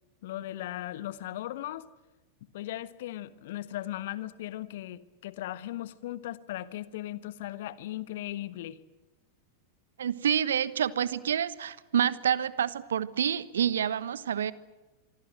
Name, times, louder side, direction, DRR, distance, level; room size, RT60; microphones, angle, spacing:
voice 1, 0.2-1.9 2.5-8.8, left 14 dB, 55° left, 1.4 m, -37 dB
voice 2, 10.0-14.5, right 9 dB, 65° right, 1.2 m, -28 dB
26.0 x 25.5 x 7.5 m
figure-of-eight pair, 90°, 0 cm